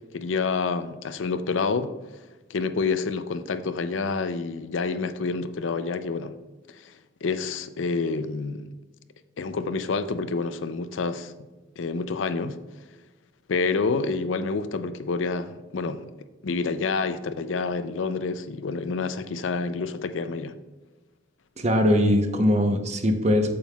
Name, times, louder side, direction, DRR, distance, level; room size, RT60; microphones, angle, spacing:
voice 1, 0.0-1.9 2.5-6.3 6.7-6.9 7.2-8.7 9.4-11.3 11.8-12.6 13.5-16.1 16.4-20.5, left 4 dB, 85° left, 0.5 m, -28 dB
voice 2, 21.6-23.5, equal, 35° right, 0.8 m, -21 dB
8.6 x 7.4 x 2.3 m
head